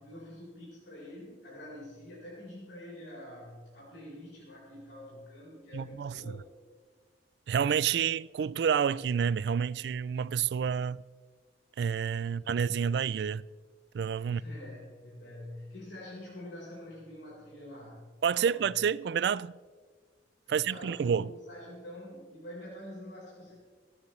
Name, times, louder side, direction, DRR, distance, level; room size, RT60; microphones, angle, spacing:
voice 1, 0.0-6.4 12.2-12.4 14.2-18.0 18.3-18.7 20.5-23.6, left 1 dB, 80° left, 4.3 m, -46 dB
voice 2, 5.7-6.1 7.5-11.0 11.8-13.5 13.9-14.4 18.2-19.5 20.5-21.3, right 7 dB, 65° right, 0.3 m, -29 dB
24.0 x 9.5 x 3.2 m
head